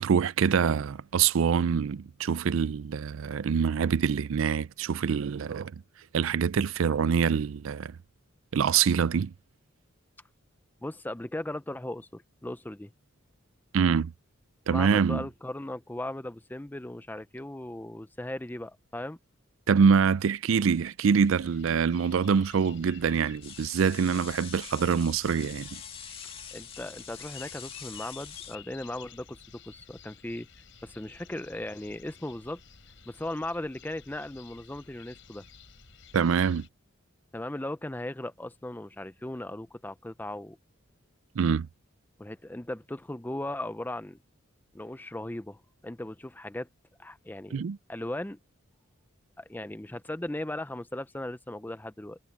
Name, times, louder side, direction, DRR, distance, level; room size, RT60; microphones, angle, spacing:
voice 1, 0.0-5.7 6.1-7.9 8.5-9.3 13.7-14.1 14.7-15.2 19.7-25.7 36.1-36.7 41.4-41.7 47.5-47.8, right 6 dB, 70° right, 0.4 m, -25 dB
voice 2, 10.8-12.9 14.7-19.2 26.5-30.5 30.8-32.6 33.1-35.4 37.3-40.6 42.2-44.2 44.7-46.7 47.0-47.6 47.9-48.4 49.4-52.2, left 1 dB, 10° left, 0.5 m, -37 dB
sound 1, 21.1-36.7, left 7 dB, 65° left, 5.7 m, -52 dB
sound 2, 23.4-28.5, left 7 dB, 25° left, 2.0 m, -44 dB
head